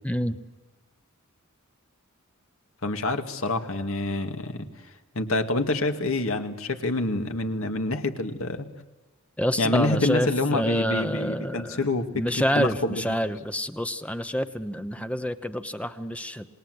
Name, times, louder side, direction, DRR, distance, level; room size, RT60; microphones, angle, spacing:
voice 1, 0.0-0.4 9.4-11.8 12.2-16.5, equal, 5° left, 10 dB, 1.0 m, -27 dB
voice 2, 2.8-4.7 5.1-8.7 9.6-13.2, left 2 dB, 70° left, 6 dB, 2.2 m, -27 dB
27.5 x 20.5 x 8.1 m, 1.2 s
head